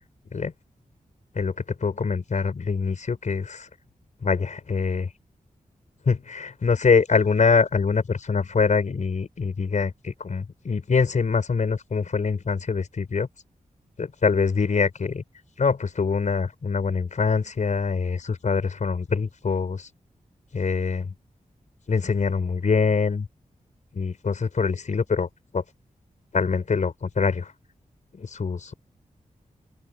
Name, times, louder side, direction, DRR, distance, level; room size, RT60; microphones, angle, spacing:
voice 1, 1.8-3.7 4.2-5.1 6.1-13.3 14.0-15.2 15.6-19.9 20.5-21.1 21.9-23.3 23.9-25.3 25.5-25.6 26.3-27.5 28.1-28.7, left 5 dB, 60° left, 4.7 m, -24 dB
open air
wide cardioid pair, 115°, 14 cm